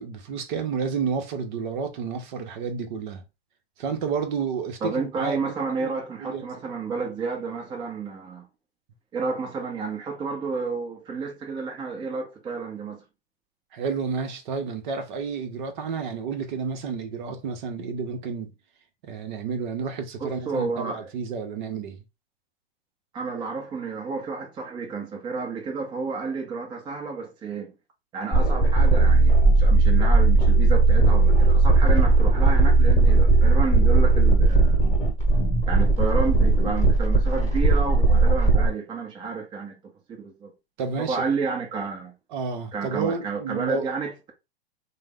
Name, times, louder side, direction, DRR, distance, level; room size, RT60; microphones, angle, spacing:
voice 1, 0.0-3.2 3.8-5.5 5.8-5.9 6.2-6.4 13.7-18.5 19.0-22.0 40.8-41.3 42.3-43.9, right 5 dB, 50° right, 0.8 m, -30 dB
voice 2, 4.8-8.5 9.1-13.0 20.2-21.1 23.1-27.7 28.1-34.8 35.6-39.7 40.2-40.5 41.1-42.1 42.7-44.3, right 4 dB, 15° right, 0.7 m, -31 dB
sound 1, 28.3-38.7, right 2 dB, 10° left, 1.2 m, -18 dB
3.2 x 2.0 x 3.5 m
hypercardioid pair, 140°, 31 cm